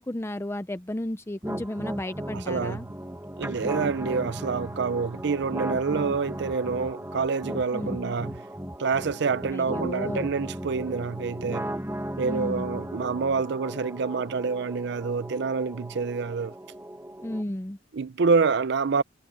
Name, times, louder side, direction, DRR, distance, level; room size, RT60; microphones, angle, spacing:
voice 1, 0.0-2.9 7.7-8.2 9.5-10.3 12.2-12.9 17.2-17.8, left 1 dB, 15° left, 0.6 m, -33 dB
sound 1, 1.4-17.4, right 1 dB, 15° right, 1.6 m, -36 dB
voice 2, 2.3-2.9 3.4-8.4 8.8-11.7 12.2-16.5 17.9-19.0, right 5 dB, 60° right, 0.5 m, -27 dB
head